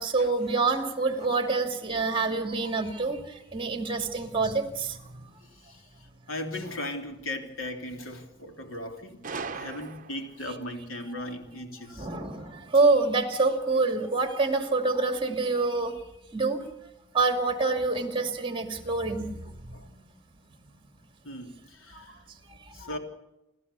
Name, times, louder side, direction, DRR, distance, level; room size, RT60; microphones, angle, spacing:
voice 1, 0.0-3.2 3.5-5.0 11.9-16.0 16.3-16.6 17.1-19.3 21.9-22.1 22.8-22.9, right 3 dB, 25° right, 2.4 m, -26 dB
voice 2, 5.4-9.2 9.5-12.1 19.7-19.9 21.2-22.2 22.7-23.0, left 1 dB, 80° left, 3.3 m, -38 dB
Gunshot gunfire, 9.2-10.5, right 4 dB, 40° right, 1.0 m, -38 dB
28.5 x 14.5 x 6.9 m
head